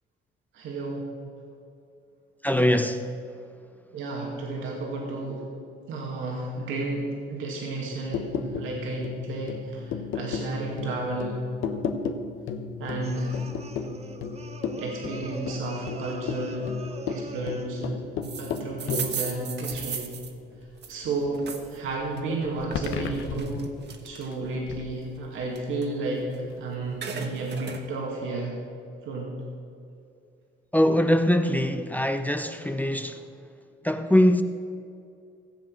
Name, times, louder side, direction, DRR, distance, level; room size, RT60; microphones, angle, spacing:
voice 1, 0.5-1.1 3.9-5.4 5.9-11.4 12.8-13.4 14.8-16.7 17.1-18.0 18.4-20.1 20.9-23.7 24.0-28.6 29.1-29.3, right 2 dB, 90° right, 2.4 m, -32 dB
voice 2, 2.4-3.1 30.7-33.2 33.8-34.4, left 1 dB, 10° left, 0.6 m, -22 dB
sound 1, 7.9-21.3 21.6-25.0 25.4-25.7, left 6 dB, 80° left, 1.0 m, -35 dB
sound 2, 13.0-17.9, right 3 dB, 30° right, 0.9 m, -44 dB
sound 3, 18.2-21.8 22.2-24.5 25.0-26.5 26.8-27.8, right 6 dB, 60° right, 1.3 m, -37 dB
15.5 x 7.9 x 6.4 m
cardioid pair, 90°, 20 cm